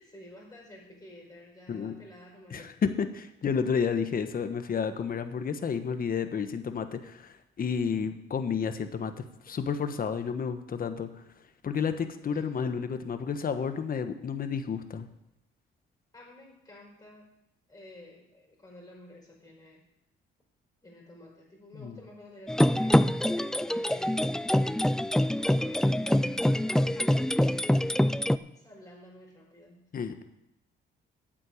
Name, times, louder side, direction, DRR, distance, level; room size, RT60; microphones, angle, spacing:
voice 1, 0.0-2.8 9.5-9.6 12.2-12.8 16.1-17.3 17.7-19.8 20.8-24.8 25.3-27.7 28.5-29.9, left 1 dB, 20° left, -2 dB, 5.1 m, -50 dB
voice 2, 2.5-11.1 11.6-15.1 21.8-22.0 29.9-30.2, left 6 dB, 45° left, 9 dB, 1.2 m, -31 dB
sound 1, 22.5-28.4, left 1 dB, 5° left, 0.3 m, -25 dB
9.1 x 7.6 x 8.7 m, 0.87 s
cardioid pair, 90°, 20 cm